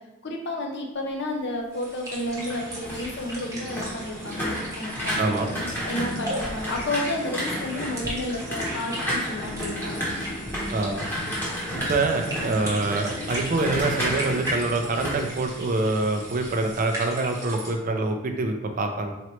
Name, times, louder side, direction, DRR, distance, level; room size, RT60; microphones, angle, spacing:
voice 1, 0.2-5.4 5.9-10.0, left 1 dB, 50° left, 1 dB, 0.6 m, -31 dB
sound 1, 1.7-17.7, right 1 dB, 15° right, 0.8 m, -38 dB
sound 2, 2.1-16.1 16.4-16.8, equal, 10° left, 1.0 m, -32 dB
voice 2, 5.2-5.5 10.7-11.0 11.7-19.1, right 3 dB, 35° right, 4 dB, 0.4 m, -25 dB
3.9 x 3.0 x 3.1 m, 1.0 s
head